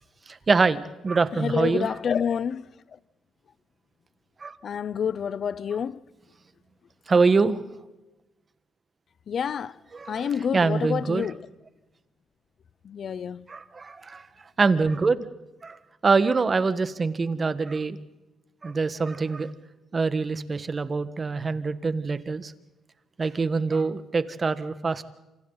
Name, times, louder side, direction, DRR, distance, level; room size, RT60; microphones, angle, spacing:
voice 1, 0.3-1.9 4.4-4.6 7.1-7.6 9.9-11.3 13.5-14.3 14.6-15.3 15.6-15.8 16.0-18.0 18.6-19.5 19.9-22.5 23.2-25.0, right 4 dB, 35° right, 1.5 m, -24 dB
voice 2, 1.3-2.7 4.6-6.0 9.3-9.8 10.1-11.5 12.8-13.5, left 7 dB, 55° left, 0.7 m, -28 dB
28.0 x 27.5 x 4.1 m
cardioid pair, 90°, 0 cm